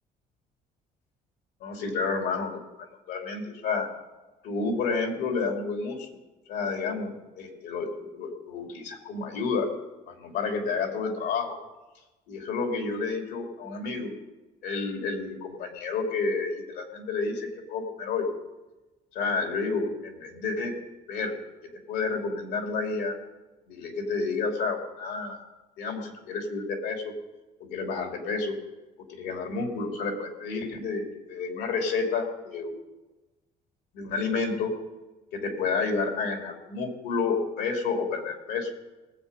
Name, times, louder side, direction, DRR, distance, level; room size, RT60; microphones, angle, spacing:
voice 1, 1.6-2.5 2.8-3.9 4.4-6.1 6.5-9.7 10.1-11.6 12.3-14.1 14.6-18.3 19.1-20.7 21.1-21.4 21.9-23.1 23.7-25.4 25.8-27.1 27.6-28.5 29.1-32.7 33.9-34.7 35.3-38.7, left 4 dB, 85° left, 3 dB, 2.6 m, -30 dB
19.0 x 8.1 x 5.3 m, 1.1 s
cardioid pair, 110°, 17 cm